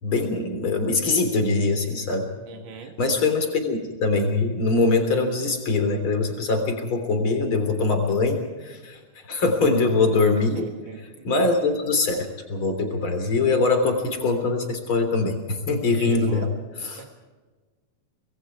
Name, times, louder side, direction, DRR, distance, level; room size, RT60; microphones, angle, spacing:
voice 1, 0.0-2.3 3.0-9.0 9.3-10.6 11.2-16.5 16.8-17.0, left 3 dB, 45° left, 6 dB, 4.2 m, -23 dB
voice 2, 2.5-2.9 10.5-11.3 15.8-16.5 17.0-17.1, right 3 dB, 45° right, 3 dB, 2.5 m, -38 dB
26.0 x 21.0 x 4.8 m, 1.3 s
omnidirectional pair, 3.4 m